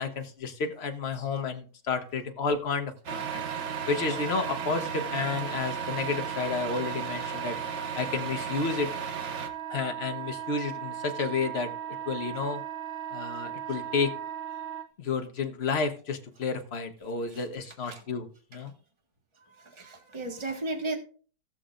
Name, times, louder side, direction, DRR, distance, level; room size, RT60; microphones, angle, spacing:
voice 1, 0.0-3.4 3.9-7.6 7.9-8.9 9.7-11.7 12.1-12.6 13.1-14.1 15.0-18.7, left 4 dB, 40° left, 6 dB, 1.1 m, -31 dB
Wind instrument woodwind instrument, 3.1-14.9, right 10 dB, 70° right, 0.5 m, -37 dB
Truck, 3.1-9.5, right 5 dB, 90° right, 1.8 m, -37 dB
voice 2, 19.6-21.0, right 2 dB, 15° right, 3 dB, 1.5 m, -34 dB
18.0 x 6.9 x 2.5 m, 0.41 s
omnidirectional pair, 2.0 m